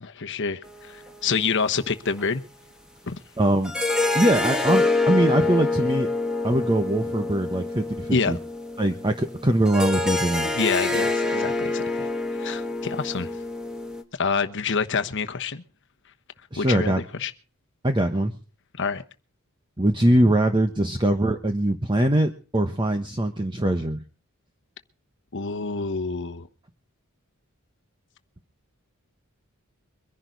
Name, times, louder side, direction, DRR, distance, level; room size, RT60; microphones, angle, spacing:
voice 1, 0.0-2.4 3.1-3.2 8.1-8.4 10.6-12.1 12.4-13.3 14.2-15.6 16.6-17.3 18.7-19.0 25.3-26.5, left 5 dB, 55° left, 1.1 m, -27 dB
sound 1, 0.6-1.3 2.2-2.3 3.6-14.0, left 3 dB, 5° right, 1.6 m, -26 dB
voice 2, 3.4-3.7 4.1-6.1 6.4-8.4 8.8-10.5 16.5-17.0 17.8-18.3 19.8-24.0, right 1 dB, 20° right, 1.1 m, -22 dB
23.5 x 11.0 x 4.0 m
head